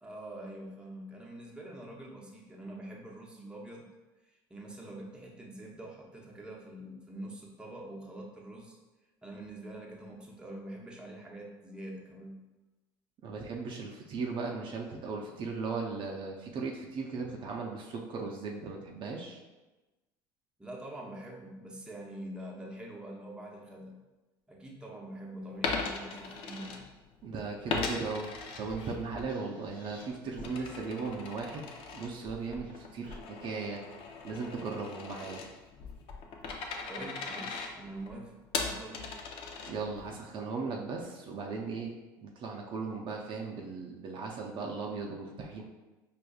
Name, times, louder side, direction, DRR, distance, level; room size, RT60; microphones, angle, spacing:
voice 1, 0.0-3.9 4.3-8.8 9.2-12.4 20.6-24.0 24.5-26.8 36.9-38.3 38.6-39.1, right 1 dB, 10° right, -2 dB, 0.8 m, -45 dB
voice 2, 13.2-19.4 27.2-28.3 28.6-33.8 34.2-35.4 39.7-41.9 42.2-45.6, right 4 dB, 50° right, 0 dB, 0.5 m, -37 dB
Coin (dropping), 25.5-27.2 27.7-29.3 29.7-40.1, left 4 dB, 55° left, 0.6 m, -39 dB
sound 1, 29.3-33.0, left 2 dB, 80° left, 1.0 m, -59 dB
4.9 x 2.5 x 2.3 m, 1.1 s
supercardioid pair, 85°, 11 cm